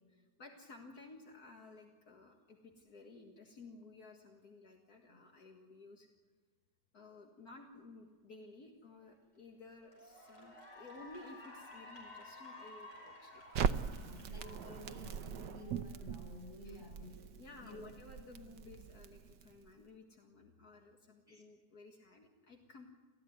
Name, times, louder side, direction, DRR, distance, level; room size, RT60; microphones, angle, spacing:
voice 1, 0.1-6.1 6.9-13.4 16.6-16.8 17.4-22.9, left 3 dB, 65° left, 2 dB, 2.3 m, -55 dB
Cheering / Applause, 9.1-9.4 9.8-16.3, left 2 dB, 50° left, 6.4 m, -54 dB
Crackle, 13.5-19.7, right 7 dB, 75° right, 1.4 m, -40 dB
voice 2, 14.0-17.2 17.6-17.8 21.3-21.4, left 2 dB, 10° left, 0 dB, 6.6 m, -52 dB
29.5 x 15.0 x 9.4 m, 1.5 s
omnidirectional pair, 1.8 m